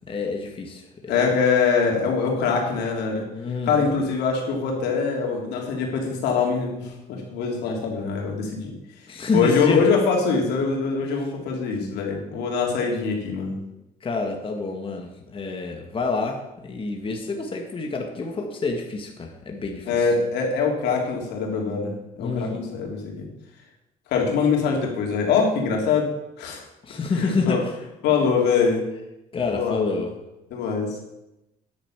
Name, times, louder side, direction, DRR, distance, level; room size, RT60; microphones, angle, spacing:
voice 1, 0.1-1.1 3.4-3.9 9.1-9.9 14.0-20.1 22.2-22.6 26.8-27.7 29.3-30.1, left 3 dB, 30° left, 2 dB, 1.8 m, -28 dB
voice 2, 1.1-3.3 3.6-13.6 19.8-23.3 24.1-26.1 26.4-26.6 27.1-27.6 28.0-28.8 29.5-30.0 30.5-30.9, left 5 dB, 80° left, 0 dB, 3.3 m, -23 dB
10.0 x 8.3 x 7.3 m, 0.93 s
cardioid pair, 110°, 17 cm